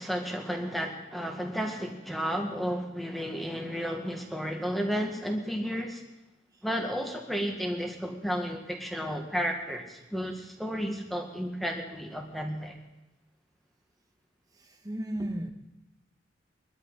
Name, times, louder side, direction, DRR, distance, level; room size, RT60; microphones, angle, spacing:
voice 1, 0.0-6.0 6.6-12.7, equal, ahead, 1.9 m, -32 dB
voice 2, 14.8-15.5, right 1 dB, 20° right, 1.4 m, -33 dB
23.0 x 12.5 x 4.0 m
head